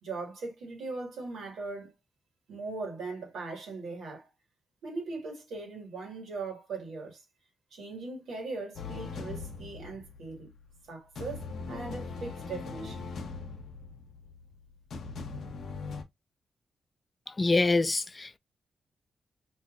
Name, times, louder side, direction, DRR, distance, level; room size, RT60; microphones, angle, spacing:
voice 1, 0.0-1.9 2.5-4.3 4.8-7.2 7.7-10.5 10.9-13.1, right 3 dB, 80° right, 1.7 m, -39 dB
sound 1, 8.8-10.8 11.2-16.0, left 4 dB, 70° left, 0.6 m, -41 dB
voice 2, 17.4-18.4, left 3 dB, 35° left, 0.4 m, -25 dB
5.5 x 2.5 x 2.4 m
supercardioid pair, 50°, 0 cm